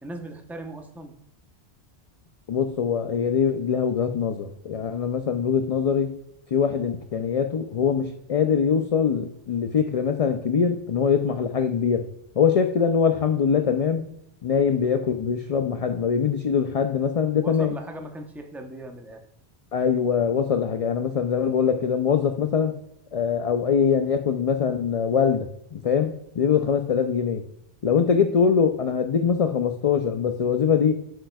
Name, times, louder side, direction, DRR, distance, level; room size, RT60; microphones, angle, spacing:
voice 1, 0.0-1.1 17.4-19.3, right 1 dB, ahead, 3 dB, 0.6 m, -38 dB
voice 2, 2.5-6.2 6.5-12.1 12.4-14.0 14.4-17.7 19.7-22.8 23.1-27.5 27.8-31.0, left 7 dB, 55° left, 7 dB, 0.4 m, -23 dB
7.6 x 6.7 x 2.3 m, 0.77 s
omnidirectional pair, 1.1 m